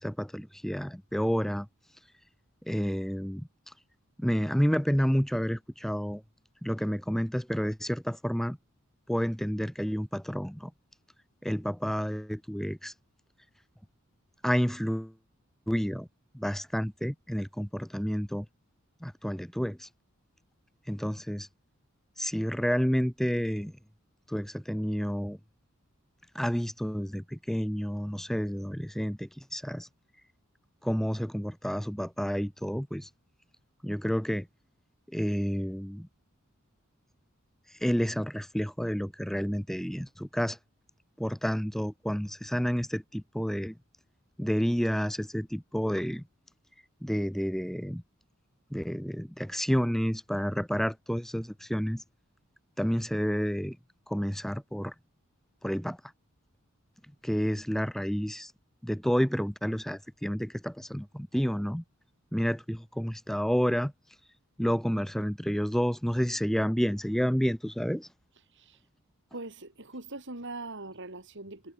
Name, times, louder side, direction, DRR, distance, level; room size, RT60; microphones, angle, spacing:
voice 1, 0.0-1.7 2.6-3.7 4.2-6.2 6.6-8.6 9.1-10.7 11.4-12.9 14.4-15.1 15.7-16.1 16.3-18.5 19.0-19.9 20.8-21.5 22.2-23.8 24.3-25.4 26.3-29.9 30.8-33.1 33.8-34.5 35.1-36.1 37.7-40.6 41.2-43.8 44.4-46.2 47.0-48.0 48.7-52.0 52.8-53.8 54.1-54.9 55.6-56.1 57.2-58.5 58.8-61.8 62.3-64.2 64.6-68.1, equal, ahead, 1.0 m, -30 dB
voice 2, 68.5-68.9 69.3-71.7, right 2 dB, 60° right, 4.6 m, -42 dB
head